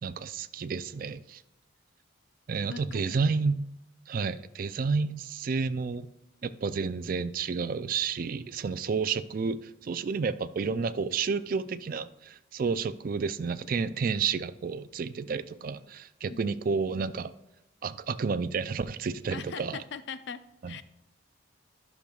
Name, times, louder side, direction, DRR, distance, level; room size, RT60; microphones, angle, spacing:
voice 1, 0.0-1.4 2.5-3.7 4.1-6.1 6.4-17.3 17.8-19.8 20.6-20.7, right 5 dB, 45° right, 0.3 m, -31 dB
voice 2, 2.6-3.3 16.3-16.5 19.3-20.8, left 6 dB, 60° left, 0.5 m, -41 dB
12.0 x 6.6 x 2.3 m
head